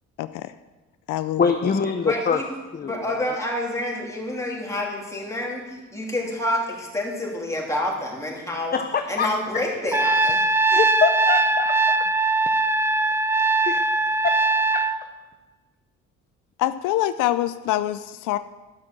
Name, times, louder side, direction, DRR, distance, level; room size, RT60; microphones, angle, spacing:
voice 1, 0.2-0.5 1.1-1.7 16.6-18.4, left 14 dB, 90° left, 13 dB, 0.5 m, -25 dB
voice 2, 1.4-2.4 2.8-3.2 8.7-9.3 10.7-12.0 13.6-13.8 14.2-14.3 14.7-14.8, left 5 dB, 30° left, 6 dB, 0.8 m, -24 dB
voice 3, 2.1-2.5 2.9-8.7 9.1-10.4, left 1 dB, 10° left, -2 dB, 3.3 m, -28 dB
Trumpet, 9.9-15.0, right 2 dB, 10° right, 0.4 m, -21 dB
12.0 x 6.2 x 7.5 m, 1.2 s
cardioid pair, 90°, 30 cm